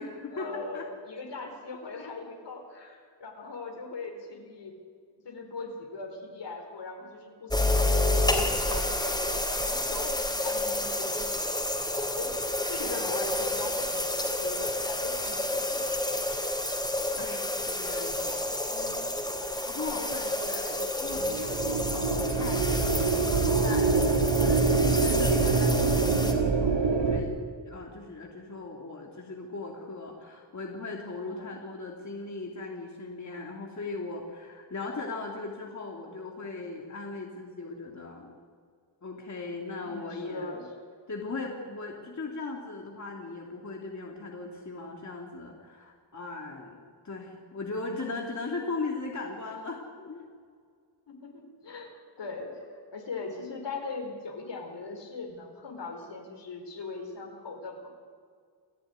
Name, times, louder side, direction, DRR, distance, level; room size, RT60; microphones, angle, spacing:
voice 1, 0.0-4.7 5.2-15.8 19.7-19.9 31.3-31.5 39.8-40.6 51.1-57.9, left 3 dB, 70° left, 3 dB, 4.6 m, -40 dB
sound 1, 7.5-26.3, left 1 dB, 10° left, 3.7 m, -30 dB
voice 2, 17.2-19.1 19.7-27.3 27.6-38.3 39.0-40.6 41.1-46.8 47.0-50.2, left 3 dB, 40° left, 0 dB, 2.9 m, -38 dB
sound 2, 21.1-27.2, right 4 dB, 80° right, 2.7 m, -25 dB
28.5 x 14.0 x 9.6 m, 2.1 s
wide cardioid pair, 105°, 44 cm